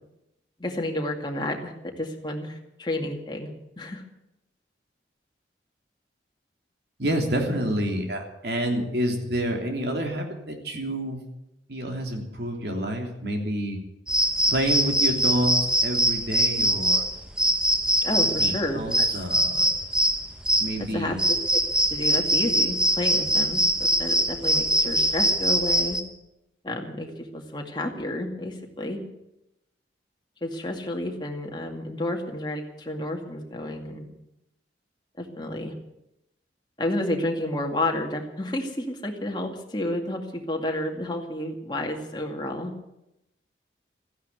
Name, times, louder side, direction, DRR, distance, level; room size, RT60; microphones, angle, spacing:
voice 1, 0.6-4.0 18.0-19.2 20.8-21.6 21.9-26.0 26.6-29.0 30.4-34.1 35.2-35.7 36.8-42.7, left 1 dB, 25° left, 2 dB, 2.2 m, -31 dB
voice 2, 7.0-11.2 11.7-13.8 14.5-15.6 15.8-17.0 18.4-19.7 20.6-21.2, right 1 dB, 65° right, 2 dB, 3.2 m, -28 dB
sound 1, 14.1-26.0, equal, 5° right, 1.0 m, -23 dB
15.0 x 10.5 x 9.6 m, 0.88 s
head